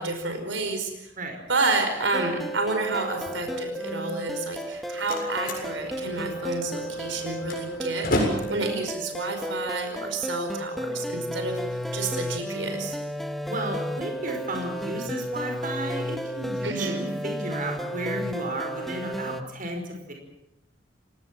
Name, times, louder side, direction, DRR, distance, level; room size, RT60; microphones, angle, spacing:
voice 1, 0.0-1.1 1.5-13.0 16.6-17.0, right 3 dB, 80° right, 5 dB, 5.1 m, -30 dB
sound 1, 2.1-19.4, equal, ahead, 1.2 m, -33 dB
Slam, 4.5-10.5, left 1 dB, 55° left, 7.3 m, -33 dB
voice 2, 13.5-20.1, right 1 dB, 45° right, 3 dB, 5.2 m, -33 dB
29.0 x 18.0 x 7.6 m, 0.89 s
head